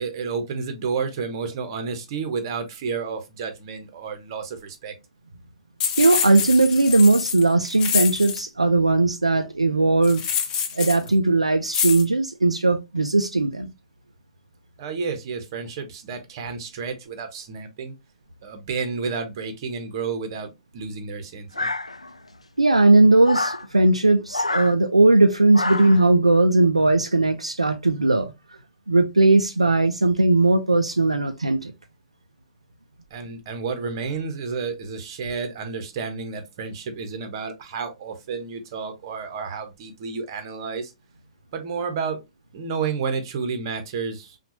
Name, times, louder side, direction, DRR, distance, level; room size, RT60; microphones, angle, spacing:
voice 1, 0.0-5.0 14.8-17.9 18.4-21.7 33.1-40.9 41.5-42.2 42.5-44.4, right 5 dB, 45° right, 1.2 m, -31 dB
sound 1, 5.8-8.4 10.0-11.1 11.7-12.0, left 8 dB, 25° left, 0.8 m, -26 dB
voice 2, 6.0-10.2 10.7-13.7 22.6-28.3 28.9-31.7, right 2 dB, 85° right, 0.5 m, -18 dB
sound 2, 21.5-22.3 23.2-23.6 24.3-24.7 25.5-26.0, left 2 dB, 85° left, 0.4 m, -27 dB
5.8 x 2.5 x 3.0 m
figure-of-eight pair, 110°, 3 cm